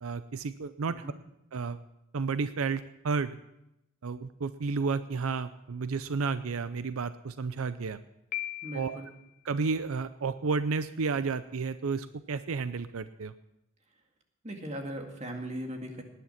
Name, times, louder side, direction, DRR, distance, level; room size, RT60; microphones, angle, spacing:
voice 1, 0.0-1.0 1.5-1.8 2.1-3.3 4.0-8.0 8.7-9.0 9.5-13.3, right 4 dB, 85° right, 13 dB, 0.5 m, -31 dB
Piano, 8.3-9.3, left 14 dB, 40° left, 0.9 m, -38 dB
voice 2, 8.6-9.1 14.4-16.0, right 1 dB, 35° right, 3 dB, 2.1 m, -38 dB
19.0 x 10.0 x 5.8 m, 0.85 s
head